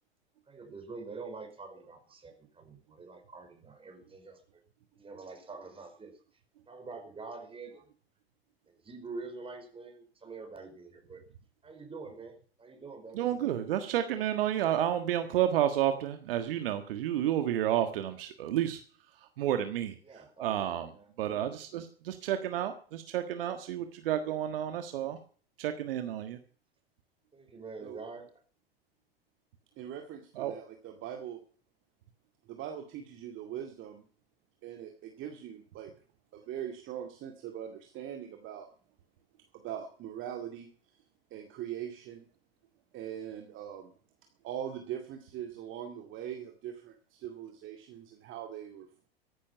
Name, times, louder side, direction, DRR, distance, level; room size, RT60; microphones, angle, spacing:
voice 1, 0.5-4.6 4.9-6.1 6.7-7.8 8.7-11.2 11.6-13.3 20.0-20.6 20.8-21.1 27.3-28.3, right 4 dB, 20° right, 5 dB, 5.2 m, -46 dB
voice 2, 13.1-18.8 19.4-19.9 20.4-20.9 21.2-25.2 25.6-26.4 30.4-30.5, right 11 dB, 65° right, 8 dB, 1.6 m, -30 dB
voice 3, 29.8-31.4 32.5-34.0 34.6-35.9 36.3-38.7 39.5-41.0 41.3-42.2 42.9-43.9 44.4-48.9, right 10 dB, 40° right, 4 dB, 2.3 m, -41 dB
14.5 x 12.0 x 5.7 m, 0.43 s
figure-of-eight pair, 90°, 31 cm